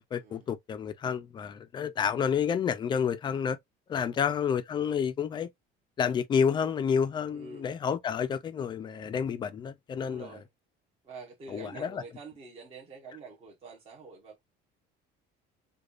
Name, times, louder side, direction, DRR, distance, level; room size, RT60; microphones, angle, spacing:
voice 1, 0.1-3.6 3.9-5.5 6.0-10.3 11.5-12.0, left 7 dB, 20° left, 0.3 m, -29 dB
voice 2, 4.0-4.4 7.3-7.7 10.0-10.5 11.0-14.4, right 4 dB, 25° right, 0.8 m, -47 dB
4.8 x 2.3 x 2.4 m
cardioid pair, 175°, 21 cm